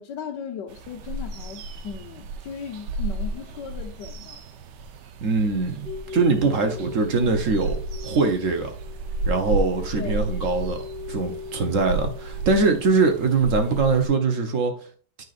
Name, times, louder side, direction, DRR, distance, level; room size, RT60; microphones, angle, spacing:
voice 1, 0.0-4.4 10.0-10.3, left 7 dB, 90° left, 1.7 m, -37 dB
sound 1, 0.7-14.1, right 3 dB, 90° right, 1.4 m, -33 dB
voice 2, 5.2-8.7 9.3-10.8 11.1-14.7, right 4 dB, 55° right, 1.2 m, -22 dB
sound 2, 5.8-12.9, left 5 dB, 35° right, 1.2 m, -40 dB
9.4 x 5.6 x 2.5 m
omnidirectional pair, 1.8 m